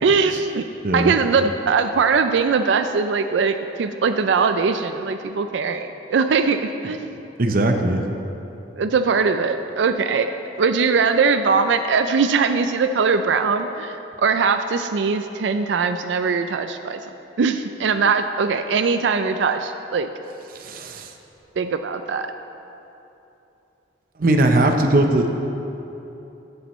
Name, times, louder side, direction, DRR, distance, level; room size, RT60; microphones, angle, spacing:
voice 1, 0.0-0.6 0.9-7.1 8.8-10.3 10.6-17.0 17.4-20.1 21.6-22.3, right 5 dB, 85° right, 9 dB, 0.4 m, -21 dB
voice 2, 7.4-8.0 20.6-21.1 24.2-25.3, right 1 dB, 50° right, 4 dB, 0.7 m, -19 dB
13.0 x 9.5 x 3.1 m, 3.0 s
head